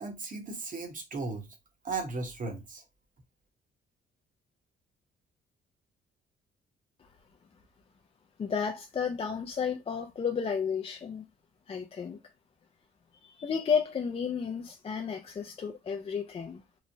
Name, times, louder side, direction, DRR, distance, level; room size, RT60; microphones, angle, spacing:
voice 1, 0.0-1.5 1.8-2.8, right 3 dB, 40° right, 0.9 m, -36 dB
voice 2, 8.4-11.3 11.7-12.2 13.2-16.6, left 6 dB, 30° left, 0.4 m, -32 dB
3.0 x 2.1 x 2.6 m
cardioid pair, 90°, 20 cm